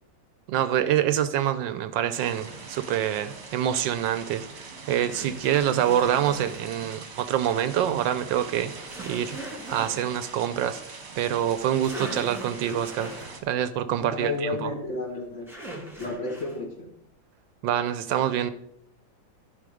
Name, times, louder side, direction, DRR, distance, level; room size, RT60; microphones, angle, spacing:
voice 1, 0.5-8.7 9.1-9.4 9.7-10.8 11.2-13.1 13.4-14.7 17.6-18.5, right 10 dB, 75° right, 12 dB, 1.2 m, -26 dB
sound 1, 2.1-13.4, right 4 dB, 40° right, 1.2 m, -43 dB
sound 2, 3.6-3.7 5.1-6.8 8.9-10.1 11.5-11.6 11.8-13.4 15.5-16.6, right 1 dB, ahead, 1.9 m, -40 dB
voice 2, 14.0-15.5 16.0-16.9, left 2 dB, 40° left, 2 dB, 1.5 m, -32 dB
11.5 x 5.2 x 5.0 m, 0.76 s
omnidirectional pair, 2.1 m